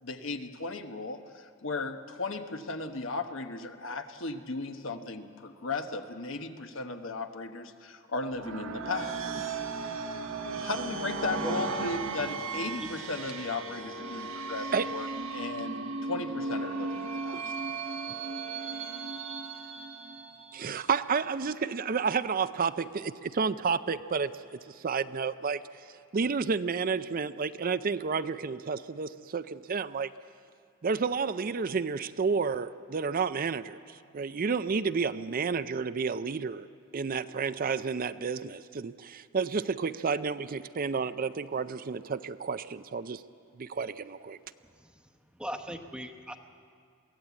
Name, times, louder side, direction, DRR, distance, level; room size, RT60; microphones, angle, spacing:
voice 1, 0.0-9.3 10.6-15.1 15.3-17.4, left 3 dB, 70° left, 6 dB, 1.2 m, -36 dB
sound 1, 8.2-20.8, right 3 dB, 80° right, 1.5 m, -36 dB
voice 2, 20.5-25.9 26.1-30.1 30.8-36.7 36.9-43.2 43.6-44.4, right 5 dB, 45° right, 12 dB, 0.5 m, -31 dB
voice 3, 44.6-46.4, equal, 5° right, 6 dB, 1.0 m, -40 dB
23.0 x 16.5 x 8.3 m, 2.2 s
head